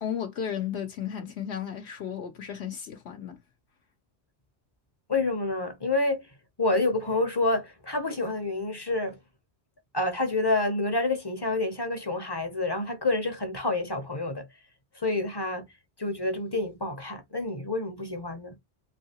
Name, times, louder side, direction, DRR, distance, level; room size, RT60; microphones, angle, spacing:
voice 1, 0.0-3.4, left 8 dB, 70° left, 0.9 m, -34 dB
voice 2, 5.1-6.3 6.6-9.2 9.9-14.5 14.9-15.7 16.0-18.5, left 2 dB, 25° left, 0.6 m, -28 dB
3.3 x 2.8 x 2.8 m
omnidirectional pair, 1.2 m